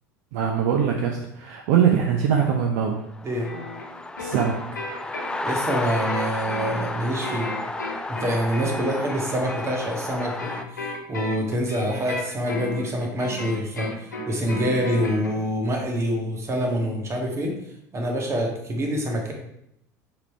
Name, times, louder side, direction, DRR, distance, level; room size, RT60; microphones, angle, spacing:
voice 1, 0.3-3.0 4.2-4.6, right 8 dB, 60° right, 2 dB, 0.7 m, -22 dB
sound 1, 3.0-10.6, left 2 dB, 10° left, 0.5 m, -32 dB
sound 2, 3.4-15.4, left 1 dB, 80° left, 0.9 m, -34 dB
voice 2, 5.4-7.5 8.1-17.5 17.9-19.3, equal, 30° right, 1 dB, 1.7 m, -26 dB
5.3 x 4.9 x 4.5 m, 0.78 s
figure-of-eight pair, 70°, 10 cm